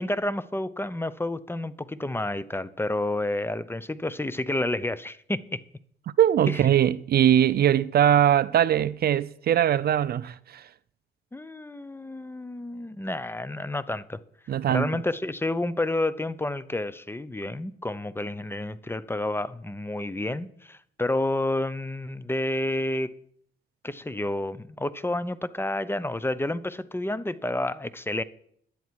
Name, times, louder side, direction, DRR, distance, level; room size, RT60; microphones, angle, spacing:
voice 1, 0.0-5.6 6.5-6.7 11.3-14.2 14.7-23.2 23.8-28.2, left 1 dB, 10° left, 0.7 m, -30 dB
voice 2, 6.2-10.6 14.5-14.9, right 10 dB, 50° right, 0.4 m, -21 dB
15.5 x 11.0 x 4.7 m
cardioid pair, 90°, 20 cm